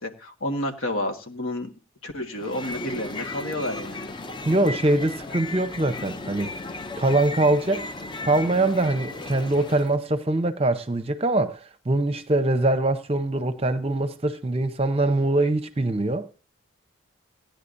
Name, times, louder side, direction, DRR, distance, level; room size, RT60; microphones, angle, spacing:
voice 1, 0.0-1.7 2.0-4.1, left 1 dB, 85° left, 1.7 m, -30 dB
sound 1, 2.3-10.0, left 2 dB, 20° left, 0.5 m, -35 dB
voice 2, 4.5-6.5 7.0-7.9 8.2-16.3, right 2 dB, 30° right, 0.7 m, -23 dB
17.0 x 10.5 x 2.6 m
head